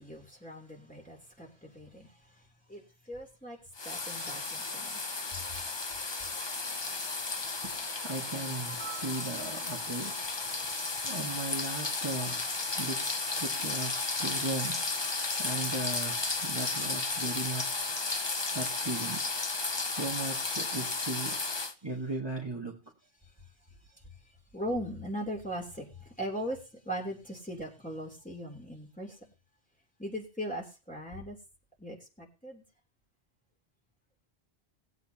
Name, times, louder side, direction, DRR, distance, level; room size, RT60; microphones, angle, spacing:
voice 1, 0.0-3.6 3.8-5.0 5.3-5.4 18.1-18.6 19.7-20.0 23.2-23.5 23.9-24.0 24.2-29.3 30.0-31.4 31.8-32.6, equal, 5° left, 3.3 m, -40 dB
sound 1, 3.8-21.7, left 3 dB, 25° left, 0.8 m, -34 dB
voice 2, 7.6-10.2 11.0-17.9 18.5-19.3 19.8-21.4 21.8-22.8, right 2 dB, 25° right, 1.9 m, -37 dB
20.0 x 8.3 x 2.9 m
omnidirectional pair, 1.1 m